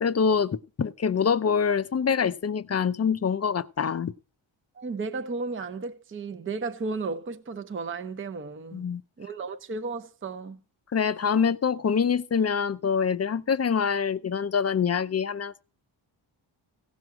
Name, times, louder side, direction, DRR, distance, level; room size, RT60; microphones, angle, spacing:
voice 1, 0.0-4.1 8.7-9.0 10.9-15.6, left 6 dB, 35° left, 0.6 m, -25 dB
voice 2, 4.8-8.8 9.2-10.6, right 4 dB, 25° right, 0.7 m, -34 dB
16.5 x 6.2 x 4.7 m
cardioid pair, 105°, 48 cm